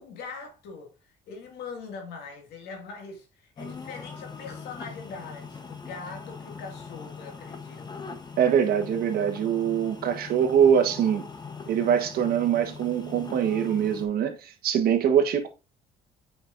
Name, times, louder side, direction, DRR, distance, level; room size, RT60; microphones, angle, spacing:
voice 1, 0.0-8.1, left 4 dB, 80° left, 2.2 m, -42 dB
sound 1, 3.6-14.1, left 5 dB, 25° left, 1.0 m, -41 dB
voice 2, 8.4-11.3 11.7-15.5, right 8 dB, 65° right, 1.3 m, -23 dB
7.0 x 5.3 x 2.6 m
cardioid pair, 110°, 17 cm